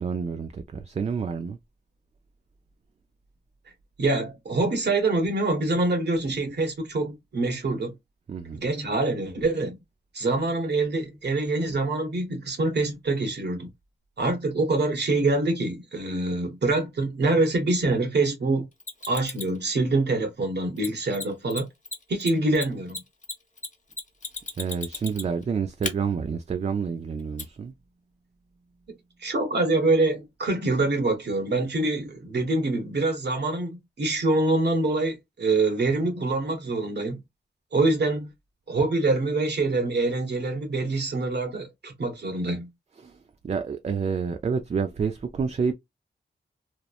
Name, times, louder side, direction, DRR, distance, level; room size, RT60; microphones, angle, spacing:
voice 1, 0.0-1.6 8.3-8.6 24.6-27.7 43.0-45.7, right 6 dB, 35° right, 0.3 m, -29 dB
voice 2, 4.0-7.9 8.5-9.8 10.1-13.7 14.2-18.7 19.1-21.7 22.1-23.0 29.2-37.2 37.7-38.3 38.7-42.7, right 2 dB, 65° right, 1.0 m, -25 dB
Mechanisms, 18.8-19.6 20.8-20.9 21.1-21.2 21.5-21.6 21.8-25.4 25.8-25.9 27.4-27.5, left 3 dB, 40° left, 1.0 m, -34 dB
2.9 x 2.1 x 2.3 m
wide cardioid pair, 75°, 19 cm